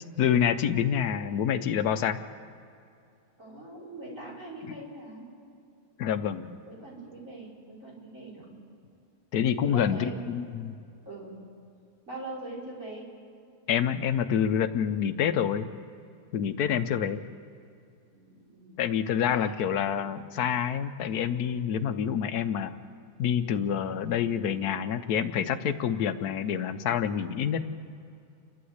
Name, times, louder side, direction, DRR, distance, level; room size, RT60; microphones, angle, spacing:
voice 1, 0.2-2.2 4.7-4.8 6.0-6.6 9.3-10.7 13.7-15.7 16.3-17.2 18.8-22.7 23.2-27.6, left 8 dB, 90° left, 10 dB, 1.3 m, -27 dB
voice 2, 3.4-5.3 6.7-8.5 9.6-10.4 11.0-11.4 12.1-13.1 16.6-16.9 18.1-18.8 19.3-19.6, right 2 dB, 60° right, -5 dB, 5.6 m, -42 dB
29.0 x 11.5 x 8.0 m, 2.5 s
omnidirectional pair, 1.6 m